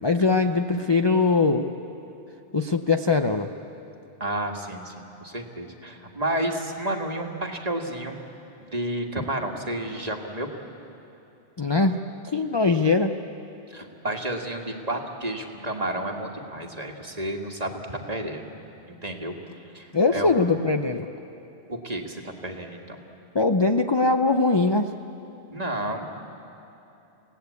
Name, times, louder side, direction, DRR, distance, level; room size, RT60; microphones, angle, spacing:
voice 1, 0.0-1.7 2.5-3.5 11.6-12.0 12.3-13.1 19.9-21.1 23.3-24.9, left 3 dB, 30° left, 6 dB, 0.6 m, -21 dB
voice 2, 4.2-8.2 8.6-10.5 13.7-18.4 19.0-19.4 19.7-20.3 21.7-23.0 25.5-26.1, right 1 dB, 35° right, 3 dB, 1.9 m, -31 dB
28.5 x 17.5 x 8.4 m, 2.9 s
omnidirectional pair, 1.2 m